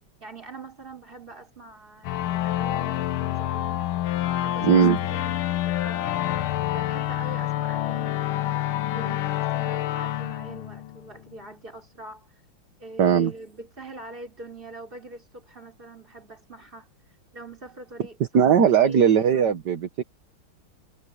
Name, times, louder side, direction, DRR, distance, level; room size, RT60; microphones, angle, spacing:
voice 1, 0.2-4.0 4.4-6.2 6.6-12.4 12.8-16.9 17.3-19.2, right 2 dB, 25° right, 3.7 m, -43 dB
sound 1, 2.0-11.4, left 14 dB, 85° left, 1.7 m, -27 dB
voice 2, 4.6-5.0 13.0-13.3 18.3-20.0, right 8 dB, 60° right, 1.8 m, -19 dB
omnidirectional pair, 2.2 m